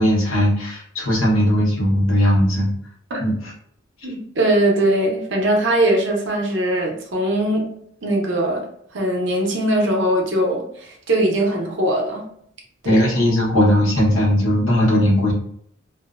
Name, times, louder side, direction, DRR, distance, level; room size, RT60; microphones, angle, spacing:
voice 1, 0.0-2.7 3.2-3.3 12.8-15.3, equal, 90° left, -4 dB, 0.9 m, -18 dB
voice 2, 4.0-7.7 8.0-8.6 8.9-12.3 12.8-13.0, right 1 dB, 65° right, 0 dB, 0.7 m, -20 dB
2.6 x 2.0 x 2.4 m, 0.67 s
head